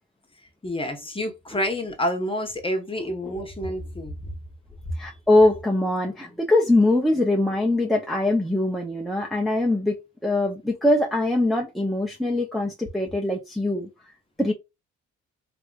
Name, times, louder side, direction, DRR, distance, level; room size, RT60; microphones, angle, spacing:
voice 1, 0.6-4.3, equal, 15° left, 1.2 m, -28 dB
voice 2, 5.0-13.9 14.4-14.5, left 2 dB, ahead, 0.7 m, -22 dB
3.4 x 2.9 x 2.4 m
cardioid pair, 90°, 30 cm